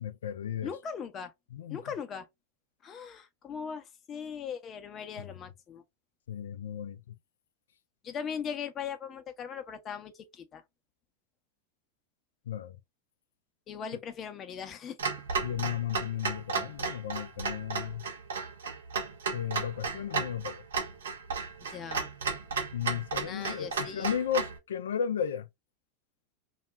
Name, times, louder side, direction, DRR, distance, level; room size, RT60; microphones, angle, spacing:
voice 1, 0.0-0.7 1.5-1.8 6.3-7.2 12.5-12.8 15.4-18.1 19.3-20.6 22.7-25.5, left 8 dB, 75° left, 0.3 m, -34 dB
voice 2, 0.6-1.3 1.7-2.3 2.8-5.8 8.0-10.6 13.7-15.0 21.7-22.1 23.2-24.2, left 7 dB, 35° left, 0.6 m, -39 dB
Clock, 15.0-24.6, right 5 dB, 80° right, 0.6 m, -34 dB
2.3 x 2.1 x 3.2 m
hypercardioid pair, 90°, 0 cm